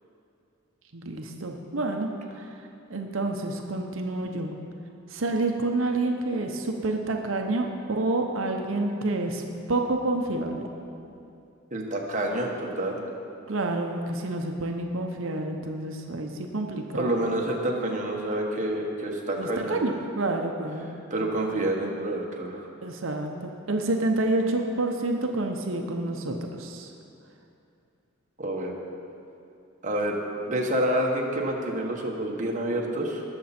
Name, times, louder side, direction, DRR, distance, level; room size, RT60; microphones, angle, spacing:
voice 1, 0.9-2.1 2.4-2.5 2.9-4.5 5.1-9.4 9.7-10.6 13.5-17.1 19.4-20.9 22.8-26.9, right 2 dB, 70° right, 3 dB, 0.8 m, -28 dB
voice 2, 11.7-13.0 16.9-20.0 21.1-22.7 28.4-28.7 29.8-30.2 30.5-33.2, right 1 dB, 40° right, 0 dB, 1.4 m, -28 dB
19.0 x 6.9 x 4.3 m, 2.6 s
head